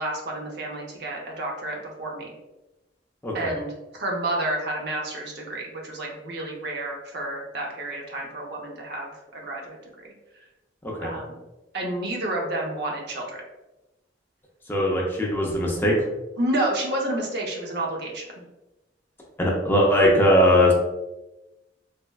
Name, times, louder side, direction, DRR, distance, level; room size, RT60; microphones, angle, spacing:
voice 1, 0.0-2.3 3.3-10.4 11.0-11.4 11.7-13.4 16.4-18.4, right 1 dB, 65° right, -1 dB, 0.6 m, -30 dB
voice 2, 14.7-15.9 19.4-20.7, equal, 10° left, -3 dB, 0.5 m, -20 dB
3.3 x 2.1 x 2.2 m, 1.0 s
head